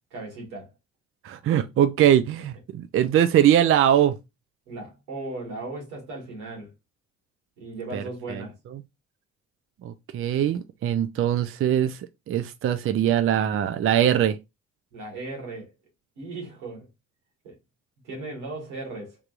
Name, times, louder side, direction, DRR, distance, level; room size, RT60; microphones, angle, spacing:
voice 1, 0.1-0.7 4.7-6.7 7.6-8.5 14.9-15.7 16.2-16.9 17.4-17.5 18.0-19.2, right 2 dB, 85° right, 1.7 m, -37 dB
voice 2, 1.2-4.2 7.9-8.0 8.3-8.4 9.8-12.0 12.3-14.4, right 10 dB, 40° right, 0.4 m, -21 dB
3.4 x 2.9 x 2.4 m
hypercardioid pair, 50°, 33 cm